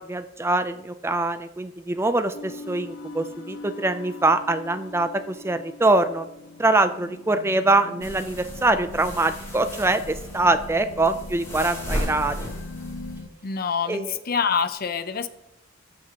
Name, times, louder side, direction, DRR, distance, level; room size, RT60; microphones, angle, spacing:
voice 1, 0.0-6.3 6.6-12.4 13.9-14.2, right 2 dB, 10° right, 11 dB, 0.4 m, -23 dB
sound 1, 2.3-13.3, left 2 dB, 70° left, 1.0 m, -41 dB
sound 2, 8.0-13.2, equal, 15° left, 3.3 m, -35 dB
voice 2, 13.4-15.3, left 6 dB, 45° left, 12 dB, 0.6 m, -26 dB
14.5 x 6.2 x 2.9 m, 0.84 s
head